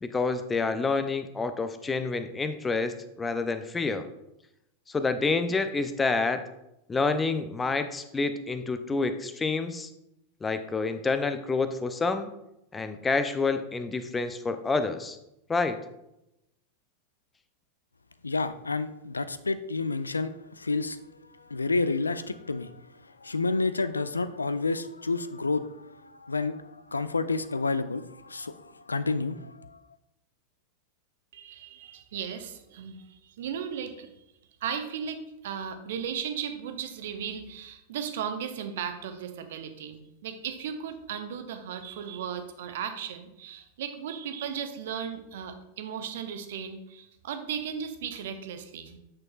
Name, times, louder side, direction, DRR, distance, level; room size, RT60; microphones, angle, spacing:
voice 1, 0.0-4.1 4.9-6.4 6.9-9.9 10.4-12.3 12.7-15.2 15.5-15.8, left 4 dB, 15° left, 10 dB, 0.5 m, -28 dB
voice 2, 18.2-21.0 21.3-29.8, left 3 dB, 80° left, 14 dB, 0.3 m, -30 dB
voice 3, 31.3-34.2 34.6-49.0, right 8 dB, 55° right, 7 dB, 0.8 m, -36 dB
8.7 x 6.2 x 2.4 m, 0.86 s
figure-of-eight pair, 90°, 0 cm